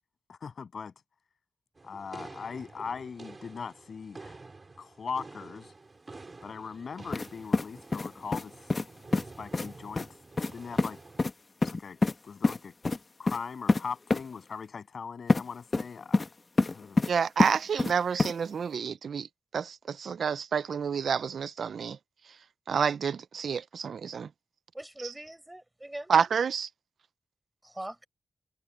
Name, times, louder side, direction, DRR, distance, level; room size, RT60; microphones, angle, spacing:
voice 1, 0.3-0.9 1.8-4.4 4.8-5.7 6.4-8.7 9.2-10.1 10.5-11.0 11.6-12.7 13.2-16.3 16.6-17.0, left 6 dB, 65° left, 7.9 m, -40 dB
sound 1, 1.8-11.3, right 3 dB, 35° right, 4.7 m, -49 dB
sound 2, 7.1-7.3 7.5-8.4 8.7-8.9 9.1-9.2 9.5-9.7 10.0-10.1 10.4-10.5 10.8-10.9 11.2-11.3 11.6-12.1 12.4-12.6 12.8-13.0 13.3-13.4 13.7-13.8 14.1-14.2 15.3-15.4 15.7-16.3 16.6-17.1 17.4-17.9 18.2-18.3, left 3 dB, 35° left, 1.3 m, -25 dB
voice 2, 17.1-19.3 19.5-22.0 22.7-24.3 26.1-26.7, right 6 dB, 90° right, 0.4 m, -29 dB
voice 3, 24.7-26.1 27.6-28.1, right 1 dB, 10° right, 4.7 m, -41 dB
wide cardioid pair, 135°, 0 cm